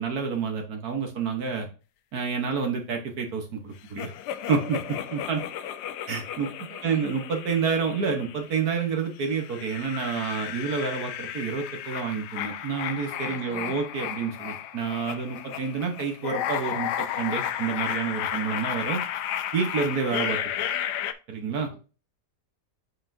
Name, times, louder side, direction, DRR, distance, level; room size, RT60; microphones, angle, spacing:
voice 1, 0.0-1.7 2.1-4.1 4.5-4.8 5.1-5.4 6.1-6.5 6.8-19.0 19.5-20.4 21.3-21.7, right 5 dB, 65° right, 3 dB, 1.7 m, -28 dB
sound 1, 4.0-8.7 9.2-21.1, left 10 dB, 85° left, 1.2 m, -33 dB
voice 2, 6.4-7.0 13.2-13.7 21.7-21.8, right 3 dB, 15° right, 1 dB, 1.6 m, -47 dB
8.0 x 5.6 x 2.7 m, 0.33 s
omnidirectional pair, 1.8 m